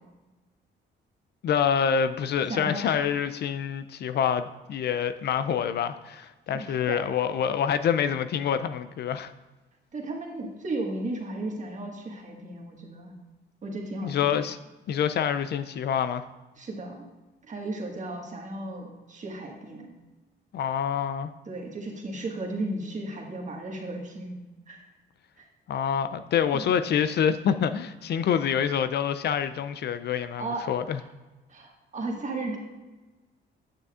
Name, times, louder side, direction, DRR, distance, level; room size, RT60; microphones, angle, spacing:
voice 1, 1.4-9.3 14.0-14.6 14.9-16.2 20.5-21.3 25.7-31.0, left 8 dB, 55° left, 11 dB, 0.4 m, -26 dB
voice 2, 2.5-2.8 6.5-7.0 9.9-13.1 13.6-14.4 16.6-17.0 17.5-19.9 21.4-24.3 24.7-24.8 25.4-25.5 26.5-26.7 30.4-31.0 31.5-32.6, right 2 dB, 40° right, 0 dB, 1.6 m, -35 dB
8.9 x 6.8 x 2.4 m, 1.2 s
cardioid pair, 90°, 20 cm